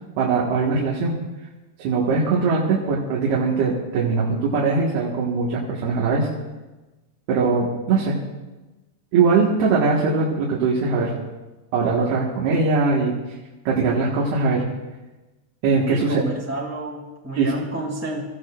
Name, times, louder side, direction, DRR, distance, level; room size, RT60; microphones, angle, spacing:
voice 1, 0.2-1.2 1.8-6.3 7.3-8.2 9.1-11.1 11.7-13.1 13.7-14.7 15.6-16.2 17.4-17.5, right 4 dB, 70° right, -5 dB, 3.6 m, -21 dB
voice 2, 15.9-18.2, right 1 dB, 5° right, 0 dB, 1.1 m, -30 dB
27.0 x 15.0 x 2.5 m, 1.1 s
omnidirectional pair, 4.9 m